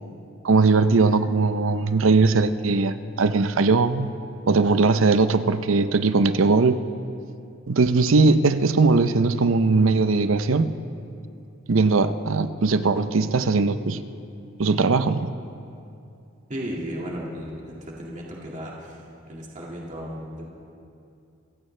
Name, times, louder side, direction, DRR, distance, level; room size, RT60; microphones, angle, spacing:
voice 1, 0.4-4.1 4.5-6.8 7.7-10.7 11.7-14.0 14.6-15.3, right 3 dB, 80° right, 12 dB, 0.6 m, -20 dB
voice 2, 16.5-19.0 19.3-20.5, equal, 40° right, -3 dB, 2.1 m, -35 dB
26.5 x 15.5 x 3.3 m, 2.6 s
head